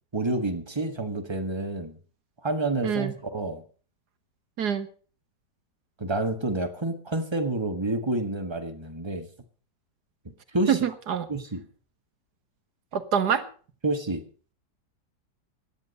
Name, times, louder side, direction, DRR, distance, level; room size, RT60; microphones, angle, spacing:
voice 1, 0.1-2.0 2.4-3.6 6.0-9.3 10.2-10.8 11.3-11.6 13.8-14.2, right 2 dB, 15° right, 1.5 m, -29 dB
voice 2, 10.7-11.3 12.9-13.4, right 8 dB, 65° right, 1.9 m, -25 dB
16.5 x 11.0 x 5.4 m
omnidirectional pair, 1.9 m